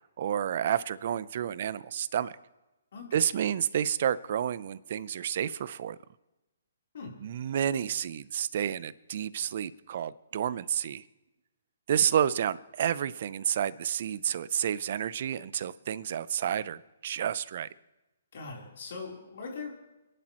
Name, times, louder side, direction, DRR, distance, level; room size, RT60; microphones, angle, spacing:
voice 1, 0.2-2.3 3.1-6.0 7.2-11.0 11.9-17.7, right 9 dB, 55° right, 17 dB, 0.6 m, -30 dB
voice 2, 18.3-19.8, left 4 dB, 65° left, -2 dB, 3.6 m, -41 dB
29.0 x 11.0 x 3.0 m, 1.0 s
hypercardioid pair, 145°, 0 cm